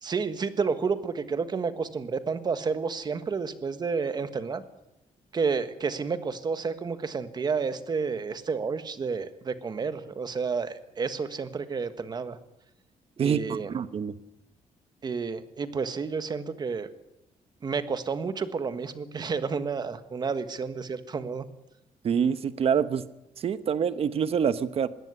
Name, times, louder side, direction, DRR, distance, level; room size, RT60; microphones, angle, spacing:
voice 1, 0.0-4.6 5.3-12.4 13.2-13.7 15.0-16.9 17.6-21.5, right 5 dB, 35° right, 11 dB, 1.5 m, -30 dB
voice 2, 13.2-14.1 22.0-23.0 23.4-24.9, right 7 dB, 50° right, 13 dB, 1.1 m, -26 dB
21.0 x 17.5 x 8.2 m, 0.90 s
wide cardioid pair, 165°, 13 cm